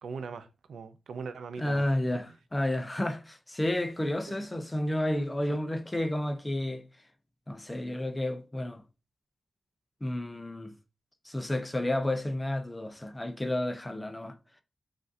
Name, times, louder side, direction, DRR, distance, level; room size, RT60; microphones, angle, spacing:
voice 1, 0.0-1.9 2.3-2.4 4.3-4.4 5.5-5.6, right 5 dB, 85° right, 0.4 m, -40 dB
voice 2, 1.6-2.3 2.5-6.8 7.5-8.8 10.0-10.7 11.3-14.4, left 1 dB, 10° left, 0.4 m, -31 dB
6.1 x 2.4 x 2.6 m
wide cardioid pair, 175°, 0 cm